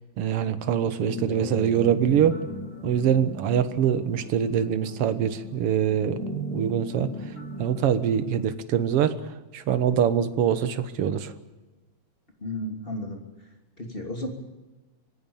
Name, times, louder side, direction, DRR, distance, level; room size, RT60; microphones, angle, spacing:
voice 1, 0.2-2.4 2.8-6.2 6.5-7.1 7.6-9.1 9.5-11.3, right 9 dB, 60° right, 11 dB, 1.9 m, -24 dB
sound 1, 1.0-8.5, right 1 dB, 90° left, 8.6 m, -38 dB
voice 2, 12.4-13.2 13.8-14.3, left 1 dB, 20° left, 2 dB, 3.0 m, -33 dB
25.0 x 18.5 x 7.2 m, 1.2 s
omnidirectional pair, 3.3 m